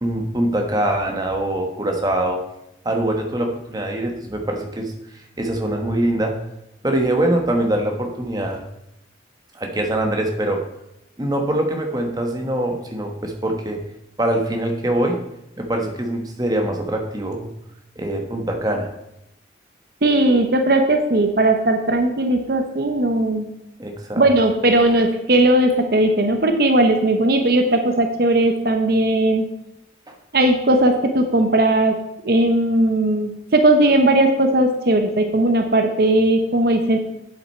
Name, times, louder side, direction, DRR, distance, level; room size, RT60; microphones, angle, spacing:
voice 1, 0.0-2.4 2.8-6.4 6.8-8.6 9.5-10.6 11.2-13.8 14.2-15.2 15.6-17.5 18.0-18.9 23.8-24.3 30.1-30.2, right 1 dB, 20° right, 3 dB, 1.0 m, -23 dB
voice 2, 20.0-23.5 24.2-29.4 30.3-31.9 32.2-37.0, right 1 dB, 55° right, 5 dB, 0.8 m, -17 dB
8.3 x 7.8 x 4.4 m, 0.85 s
head